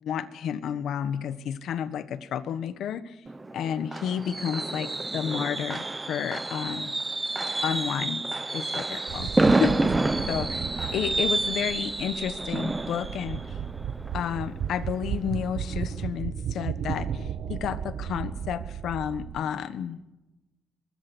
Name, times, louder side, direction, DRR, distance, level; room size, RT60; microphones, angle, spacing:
voice 1, 0.0-3.1 3.5-6.9 7.6-8.2 8.5-9.9 10.3-13.4 14.1-20.0, left 8 dB, 80° left, 13 dB, 1.3 m, -31 dB
Fireworks, 3.3-15.0 15.3-15.6 15.9-16.0, right 2 dB, 15° right, 0.8 m, -29 dB
sound 1, 9.1-19.4, right 8 dB, 70° right, 1.1 m, -35 dB
23.5 x 21.0 x 6.3 m, 1.0 s
cardioid pair, 145°, 0 cm